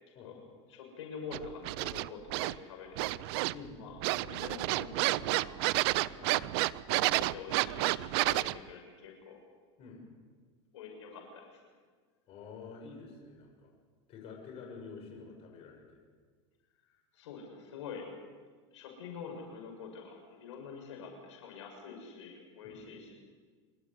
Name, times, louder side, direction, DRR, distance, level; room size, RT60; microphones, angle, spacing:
voice 1, 0.7-3.3 3.8-5.9 6.8-9.4 10.7-11.6 17.1-18.0 18.7-23.1, left 5 dB, 85° left, 1 dB, 6.7 m, -46 dB
sound 1, 1.3-2.5 3.0-3.7 4.0-8.6, right 19 dB, 65° right, 0.6 m, -30 dB
voice 2, 12.3-13.7 14.1-16.0 22.7-22.8, left 5 dB, 45° left, 1 dB, 6.8 m, -48 dB
26.5 x 13.0 x 10.0 m, 1.5 s
supercardioid pair, 135°, 15 cm